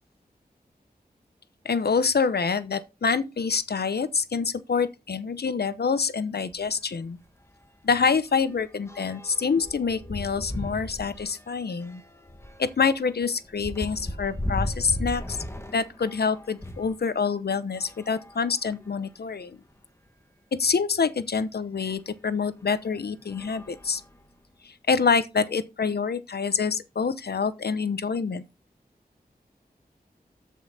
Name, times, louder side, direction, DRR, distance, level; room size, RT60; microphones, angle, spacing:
voice 1, 1.6-7.2 7.8-12.0 12.6-15.4 15.7-19.6 20.5-24.0 24.6-28.4, left 5 dB, 85° left, 0.9 m, -26 dB
sound 1, 6.5-6.7 7.0-7.1 7.5-17.0 17.7-19.0 19.7-19.8 20.1-20.2 21.9-22.0 22.6-22.8 23.3-24.5, left 1 dB, 15° left, 1.5 m, -37 dB
13.5 x 5.7 x 4.3 m
wide cardioid pair, 75°, 16 cm